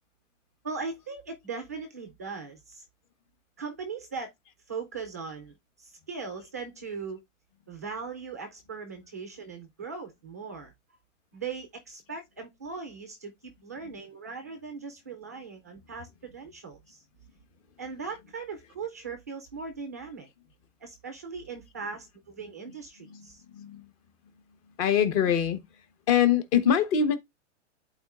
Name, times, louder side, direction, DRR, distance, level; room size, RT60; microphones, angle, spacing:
voice 1, 0.6-2.8 3.6-4.3 4.7-7.2 7.7-10.7 11.3-17.0 17.8-20.3 20.8-23.4, right 5 dB, 15° right, 0.3 m, -39 dB
voice 2, 22.4-23.9 24.7-25.6 26.1-27.2, left 8 dB, 30° left, 1.1 m, -25 dB
11.5 x 4.2 x 2.4 m
hypercardioid pair, 160°, 37 cm